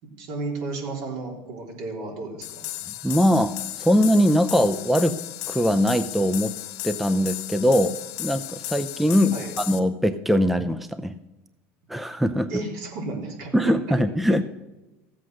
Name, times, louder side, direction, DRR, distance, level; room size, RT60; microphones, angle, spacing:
voice 1, 0.0-2.6 9.3-9.5 12.5-13.5, right 3 dB, 70° right, 1 dB, 3.6 m, -33 dB
sound 1, 2.4-9.8, left 15 dB, 65° left, 1.2 m, -35 dB
voice 2, 3.0-5.1 5.5-6.6 6.8-11.1 11.9-12.5 13.5-14.4, equal, ahead, 11 dB, 0.5 m, -21 dB
15.0 x 7.7 x 6.4 m, 1.0 s
supercardioid pair, 120°, 7 cm